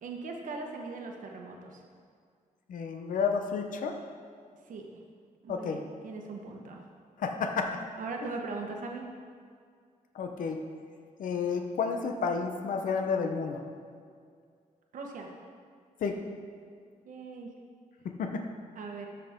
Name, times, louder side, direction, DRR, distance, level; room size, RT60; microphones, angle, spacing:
voice 1, 0.0-1.8 4.7-4.9 5.4-6.8 8.0-9.1 14.9-15.3 17.0-17.5 18.7-19.1, right 3 dB, 70° right, 1 dB, 1.2 m, -39 dB
voice 2, 2.7-4.0 5.5-5.8 7.2-7.8 10.1-10.6 11.2-13.6 16.0-16.2 18.0-18.4, left 5 dB, 75° left, 5 dB, 0.7 m, -31 dB
13.0 x 5.7 x 3.7 m, 2.2 s
wide cardioid pair, 135°, 14 cm